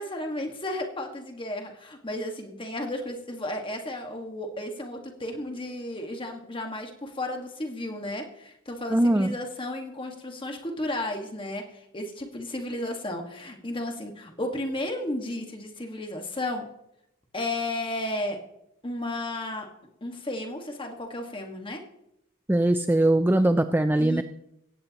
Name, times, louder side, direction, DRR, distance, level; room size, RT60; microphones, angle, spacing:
voice 1, 0.0-16.7 17.3-18.4 18.8-19.7 20.0-21.8 24.0-24.2, left 1 dB, 25° left, 3 dB, 1.7 m, -33 dB
voice 2, 8.9-9.4 22.5-24.2, right 1 dB, 10° right, 9 dB, 0.3 m, -21 dB
16.5 x 15.5 x 3.0 m, 0.83 s
head